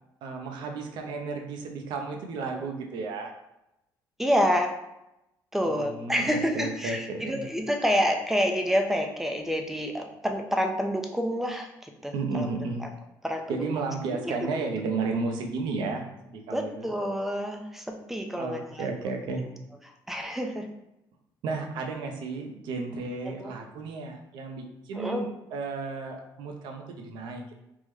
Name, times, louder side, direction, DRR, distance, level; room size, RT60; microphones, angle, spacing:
voice 1, 0.2-3.3 5.6-7.4 12.1-12.8 13.5-16.9 18.4-19.5 21.4-27.5, right 4 dB, 80° right, 3 dB, 0.5 m, -33 dB
voice 2, 4.2-4.7 5.5-12.5 12.8-12.9 13.2-13.6 14.1-14.5 16.5-18.9 20.1-20.7 23.2-23.5 24.9-25.2, equal, 5° right, 3 dB, 0.4 m, -28 dB
3.6 x 2.1 x 3.1 m, 0.87 s
cardioid pair, 125°, 8 cm